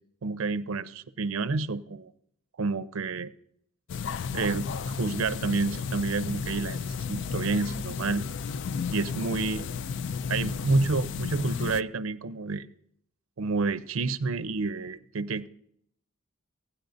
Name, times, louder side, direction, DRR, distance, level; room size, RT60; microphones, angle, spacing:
voice 1, 0.2-2.1 2.6-3.3 4.3-6.8 7.1-8.2 8.9-9.7 10.3-12.7 13.4-15.5, right 3 dB, 75° right, 14 dB, 0.5 m, -29 dB
sound 1, 3.9-11.8, left 5 dB, 55° left, 0.3 m, -33 dB
17.5 x 10.0 x 2.6 m, 0.69 s
head